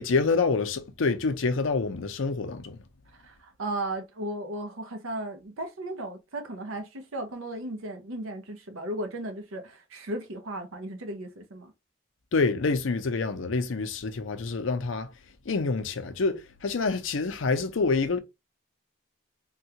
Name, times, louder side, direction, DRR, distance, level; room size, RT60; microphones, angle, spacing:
voice 1, 0.0-2.8 12.3-15.1 15.5-18.2, left 4 dB, 70° left, 0.5 m, -27 dB
voice 2, 3.2-11.7, right 1 dB, 90° right, 0.8 m, -35 dB
3.5 x 2.3 x 2.8 m
head